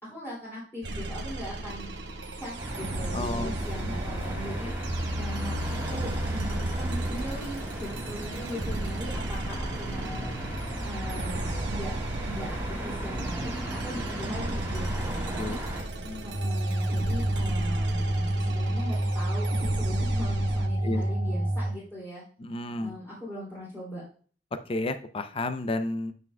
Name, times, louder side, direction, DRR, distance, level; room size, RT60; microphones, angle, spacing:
voice 1, 0.0-1.9 2.4-4.7 5.2-10.3 10.8-11.9 12.2-13.6 13.8-15.6 16.2-22.2 22.8-24.0, equal, 15° left, -10 dB, 2.6 m, -39 dB
sound 1, 0.8-20.7, right 2 dB, 80° right, 1.0 m, -36 dB
sound 2, 2.6-15.8, right 1 dB, 10° right, 2.1 m, -34 dB
voice 2, 3.1-3.6 4.2-4.3 4.6-4.8 5.1-5.5 15.4-15.6 16.0-16.3 20.8-21.0 22.4-23.0 24.6-26.1, left 2 dB, 30° left, 9 dB, 0.5 m, -32 dB
sound 3, 16.3-21.7, right 1 dB, 40° right, 1.2 m, -28 dB
9.3 x 6.0 x 2.2 m, 0.43 s
head